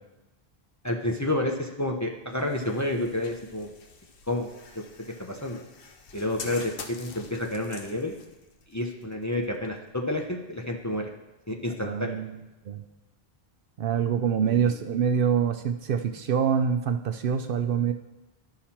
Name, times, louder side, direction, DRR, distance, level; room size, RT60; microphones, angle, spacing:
voice 1, 0.8-3.7 4.3-4.5 4.8-4.9 5.2-5.6 6.1-8.1 8.7-11.1 11.5-12.2 14.4-14.7, left 1 dB, 20° left, 1 dB, 0.6 m, -30 dB
sound 1, 2.3-10.2, left 4 dB, 65° left, 1.0 m, -46 dB
voice 2, 11.8-12.4 12.7-12.8 13.8-17.9, right 7 dB, 65° right, 8 dB, 0.7 m, -25 dB
12.0 x 5.7 x 4.3 m, 1.0 s
omnidirectional pair, 1.0 m